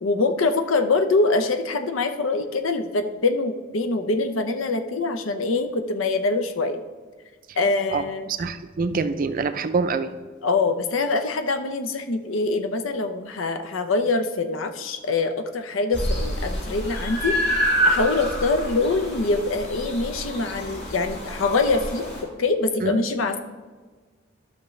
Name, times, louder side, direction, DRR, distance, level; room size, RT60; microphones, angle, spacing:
voice 1, 0.0-6.8 7.6-8.3 10.4-17.4 17.8-22.1 22.4-23.4, left 3 dB, 85° left, 8 dB, 0.7 m, -24 dB
voice 2, 8.4-10.1 22.8-23.0, right 4 dB, 45° right, 10 dB, 0.5 m, -25 dB
sound 1, 15.9-22.2, equal, 60° left, 2.2 m, -27 dB
12.5 x 6.0 x 3.2 m, 1.4 s
head